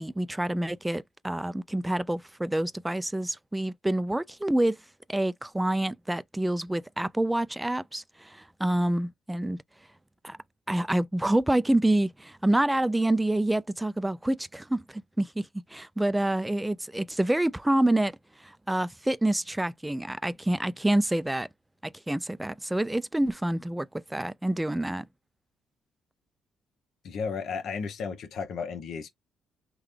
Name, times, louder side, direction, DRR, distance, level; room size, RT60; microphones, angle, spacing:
voice 1, 0.0-4.8 5.1-9.6 10.2-10.4 10.7-21.5 21.8-25.1, right 1 dB, 10° right, 0.3 m, -27 dB
voice 2, 27.0-29.1, left 5 dB, 70° left, 0.9 m, -33 dB
3.8 x 2.2 x 3.3 m
cardioid pair, 90°, 0 cm